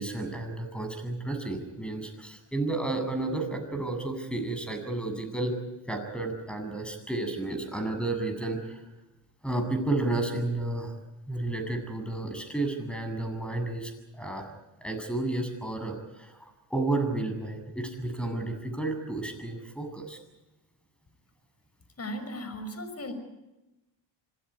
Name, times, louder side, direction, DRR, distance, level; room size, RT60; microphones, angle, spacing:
voice 1, 0.0-5.6 5.9-8.9 9.4-10.9 11.3-14.5 14.8-20.2, right 2 dB, ahead, 7 dB, 7.6 m, -32 dB
voice 2, 22.0-23.1, equal, 30° left, 9 dB, 5.8 m, -36 dB
26.5 x 16.5 x 9.7 m, 1.0 s
supercardioid pair, 80°, 46 cm